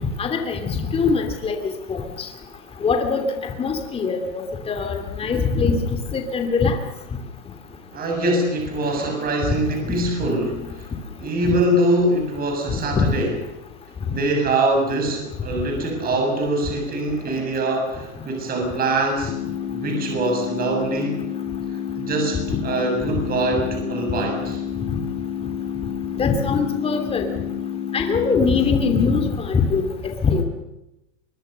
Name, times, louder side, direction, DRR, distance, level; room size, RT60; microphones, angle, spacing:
voice 1, 0.2-2.3 2.8-3.3 3.6-6.8 9.5-9.6 12.7-13.1 26.2-27.3 27.9-30.4, left 4 dB, 15° left, 5 dB, 2.7 m, -22 dB
voice 2, 7.9-10.9 11.2-13.3 14.1-19.3 19.7-21.2 21.7-24.6, right 1 dB, 25° right, 2 dB, 7.1 m, -23 dB
sound 1, 19.3-29.3, left 9 dB, 50° left, 2.2 m, -29 dB
24.0 x 22.5 x 6.7 m, 0.92 s
supercardioid pair, 145°, 38 cm